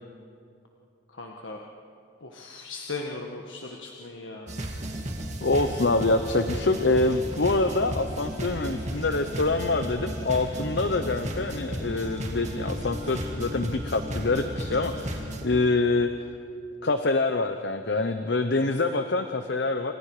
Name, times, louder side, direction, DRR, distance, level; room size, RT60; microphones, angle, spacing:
voice 1, 1.1-1.6 2.2-4.5, left 3 dB, 90° left, 0 dB, 1.7 m, -38 dB
sound 1, 4.5-15.5, equal, 35° right, 2.3 m, -34 dB
voice 2, 5.4-16.1 16.8-19.9, left 3 dB, 70° left, 8 dB, 0.9 m, -25 dB
29.0 x 26.0 x 5.0 m, 2.4 s
head